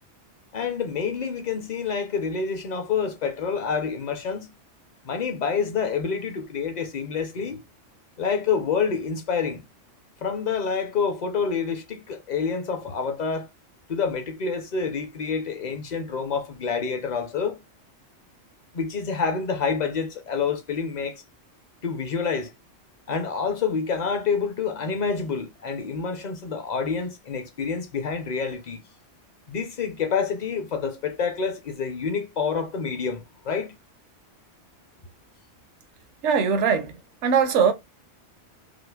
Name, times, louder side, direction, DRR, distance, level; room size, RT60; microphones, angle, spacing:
voice 1, 0.5-4.5 5.0-7.6 8.2-9.6 10.2-13.5 13.9-17.6 18.7-21.2 21.8-22.5 23.1-28.8 29.5-33.7, left 5 dB, 45° left, 0.6 m, -27 dB
voice 2, 36.2-37.7, right 6 dB, 70° right, 0.9 m, -21 dB
4.9 x 2.0 x 2.3 m
omnidirectional pair, 1.3 m